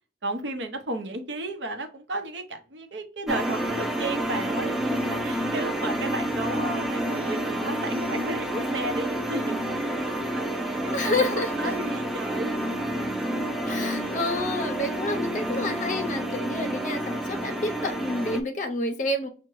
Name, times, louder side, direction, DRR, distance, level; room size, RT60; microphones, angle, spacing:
voice 1, 0.2-9.7 10.0-12.6 13.0-13.1, right 1 dB, 90° right, 0.7 m, -34 dB
sound 1, 3.3-18.4, right 1 dB, ahead, 0.4 m, -29 dB
voice 2, 10.9-11.7 13.7-19.3, left 2 dB, 45° left, 0.6 m, -29 dB
5.7 x 2.1 x 3.0 m
head